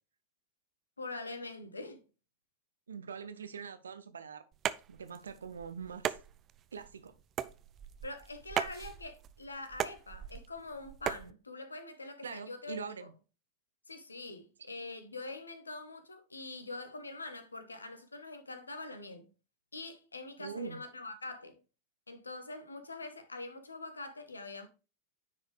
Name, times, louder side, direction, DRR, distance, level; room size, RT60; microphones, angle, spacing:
voice 1, 1.0-2.0 8.0-13.1 13.9-19.3 19.7-21.6 22.1-24.7, left 2 dB, 80° left, 1.2 m, -44 dB
voice 2, 2.9-4.4 4.9-6.2 6.7-7.1 12.2-13.1 20.4-20.8, right 6 dB, 70° right, 0.8 m, -43 dB
sound 1, 4.5-11.3, right 10 dB, 30° right, 0.5 m, -39 dB
9.6 x 4.9 x 3.3 m
figure-of-eight pair, 90°, 0 cm